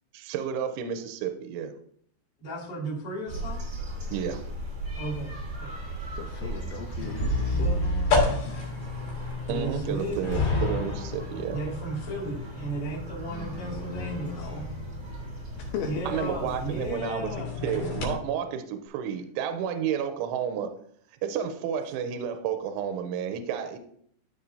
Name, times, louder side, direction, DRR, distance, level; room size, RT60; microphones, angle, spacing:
voice 1, 0.1-1.7 4.1-4.4 9.5-11.6 16.1-17.4 17.6-20.7 21.2-23.8, right 8 dB, 85° right, 7 dB, 3.0 m, -31 dB
voice 2, 2.4-3.6 4.9-5.9 7.5-8.1 9.5-10.4 11.5-14.8 15.8-17.5, right 2 dB, 35° left, -7 dB, 1.9 m, -35 dB
sound 1, 3.3-17.0, right 2 dB, 25° right, 1.4 m, -38 dB
voice 3, 5.8-7.7 13.3-14.8 15.6-16.3, left 7 dB, 80° left, 2 dB, 2.4 m, -38 dB
sound 2, 7.0-18.2, left 2 dB, 60° left, 3.7 m, -31 dB
14.0 x 5.6 x 2.7 m, 0.64 s
omnidirectional pair, 5.8 m